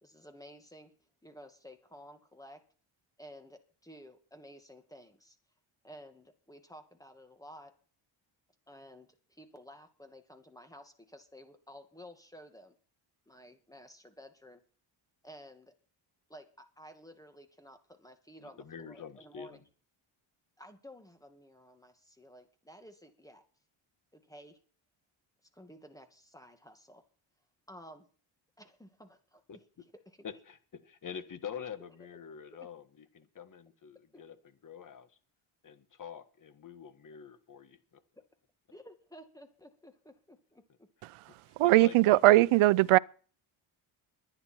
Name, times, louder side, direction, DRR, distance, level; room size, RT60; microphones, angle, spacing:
voice 1, 0.0-0.9 1.2-2.6 3.2-5.4 5.8-7.7 8.7-12.8 13.3-14.6 15.2-15.7 16.3-19.6 20.6-23.4 24.1-24.6 25.5-27.0 27.7-28.1 28.6-29.4 30.1-30.2 34.1-34.2 38.7-40.9, equal, 5° left, 2.1 m, -53 dB
voice 2, 18.4-19.6 29.5-29.6 30.2-35.2 35.6-38.0 41.3-42.4, left 7 dB, 40° left, 1.6 m, -46 dB
voice 3, 41.6-43.0, right 17 dB, 80° right, 0.6 m, -20 dB
22.5 x 9.9 x 4.5 m
cardioid pair, 125°, 49 cm